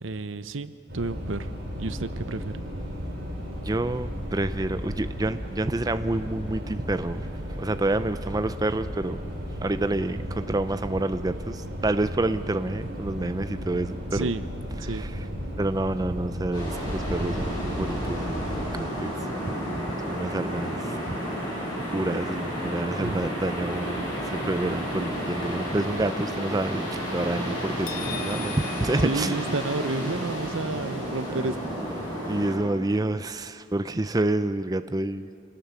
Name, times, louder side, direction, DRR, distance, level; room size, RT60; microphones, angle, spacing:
voice 1, 0.0-1.5 1.8-2.6 14.1-14.4 14.8-15.1 23.0-23.2 29.0-31.8, right 3 dB, 75° right, 13 dB, 0.8 m, -31 dB
sound 1, 0.9-18.7, equal, 55° right, 6.9 m, -34 dB
voice 2, 3.6-7.3 7.6-9.2 9.6-14.3 14.8-15.2 15.6-18.5 18.7-19.8 20.1-21.2 21.9-29.5 31.3-31.4 32.2-35.3, right 2 dB, 20° right, 11 dB, 0.4 m, -28 dB
sound 2, 16.5-32.6, equal, 20° left, 6.8 m, -31 dB
sound 3, 27.9-30.0, left 8 dB, 45° left, 1.5 m, -40 dB
26.5 x 18.5 x 7.1 m, 2.7 s
head